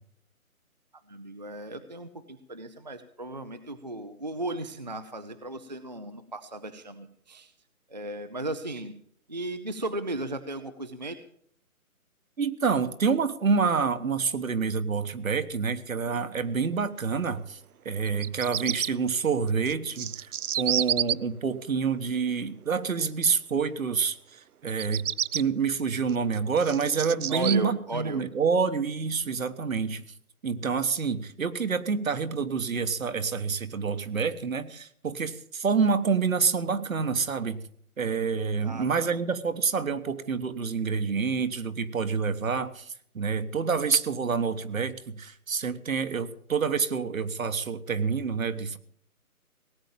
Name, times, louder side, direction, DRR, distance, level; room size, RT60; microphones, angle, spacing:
voice 1, 1.1-7.5 7.9-8.9 9.3-11.2 27.3-28.2 38.6-39.2, right 1 dB, 30° right, 9 dB, 0.6 m, -36 dB
voice 2, 12.4-17.6 17.8-20.3 20.6-25.0 25.3-30.0 30.4-37.6 38.0-48.8, right 5 dB, 65° right, 10 dB, 1.4 m, -27 dB
Bird vocalization bird call bird song, 18.1-18.9 19.7-21.1 24.7-25.4 26.1-27.6, right 10 dB, 80° right, 0.6 m, -29 dB
18.0 x 9.0 x 7.1 m, 0.65 s
hypercardioid pair, 170°, 44 cm